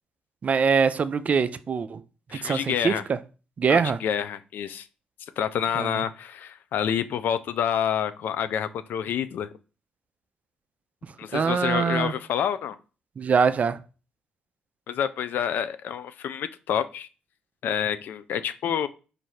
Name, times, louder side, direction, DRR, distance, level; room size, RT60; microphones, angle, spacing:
voice 1, 0.4-2.0 2.4-3.2 3.6-4.0 5.8-6.0 11.3-12.1 13.2-13.8, right 5 dB, 50° right, 0.4 m, -23 dB
voice 2, 2.3-3.0 3.7-4.9 5.4-9.5 11.2-12.8 14.9-17.1 17.6-18.9, left 9 dB, 75° left, 0.4 m, -28 dB
4.2 x 2.6 x 4.7 m
cardioid pair, 65°, 3 cm